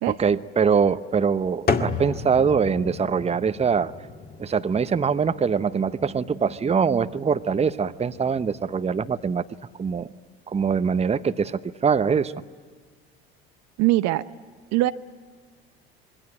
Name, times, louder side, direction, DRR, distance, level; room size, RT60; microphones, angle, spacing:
voice 1, 0.1-3.9 4.4-9.4 9.8-10.1 10.5-12.3, right 6 dB, 20° right, 12 dB, 0.9 m, -23 dB
sound 1, 1.7-9.4, left 4 dB, 30° left, 2.0 m, -34 dB
voice 2, 13.8-14.2 14.7-14.9, right 17 dB, 55° right, 12 dB, 0.8 m, -21 dB
27.0 x 22.0 x 9.0 m, 1.6 s
hypercardioid pair, 65°, 32 cm